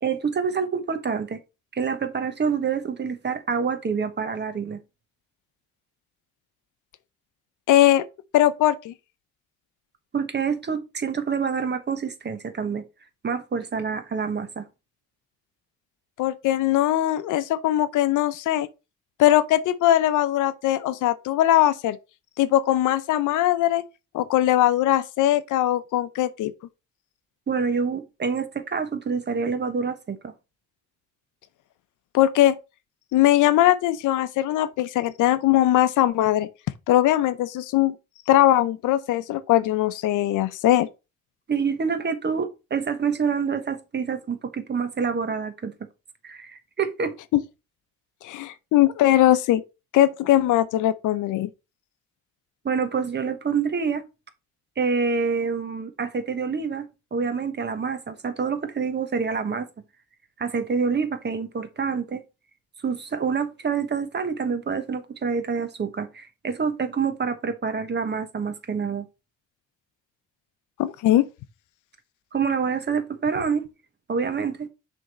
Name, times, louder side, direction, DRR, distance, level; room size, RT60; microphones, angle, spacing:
voice 1, 0.0-1.4 1.7-4.8 10.1-12.8 13.2-14.6 27.5-30.3 41.5-45.7 46.2-47.1 52.6-54.0 54.8-59.7 60.4-62.2 62.8-69.1 72.3-73.6 74.1-74.7, right 5 dB, 35° right, 1.1 m, -27 dB
voice 2, 7.7-8.0 8.3-8.9 16.2-18.7 19.2-22.0 22.4-23.8 24.1-26.5 32.1-32.6 33.1-36.5 36.9-37.9 38.3-40.9 47.3-47.4 48.2-49.6 49.9-51.5 70.8-71.3, left 13 dB, 85° left, 0.6 m, -20 dB
6.4 x 3.6 x 4.3 m
cardioid pair, 90°, 30 cm